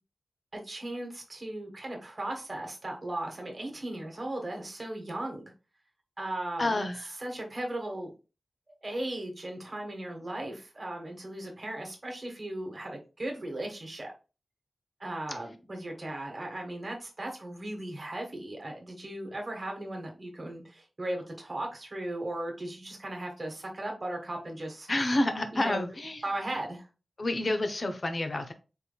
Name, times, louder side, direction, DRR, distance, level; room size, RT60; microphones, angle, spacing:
voice 1, 0.5-5.5 6.2-6.9 7.2-8.1 8.8-14.1 15.0-24.9 25.5-25.8 26.2-26.9, right 1 dB, 35° right, 1 dB, 1.2 m, -37 dB
voice 2, 6.6-7.2 24.9-26.2 27.2-28.5, left 1 dB, 40° left, 8 dB, 0.7 m, -29 dB
4.3 x 3.4 x 2.3 m, 0.31 s
wide cardioid pair, 100°, 0 cm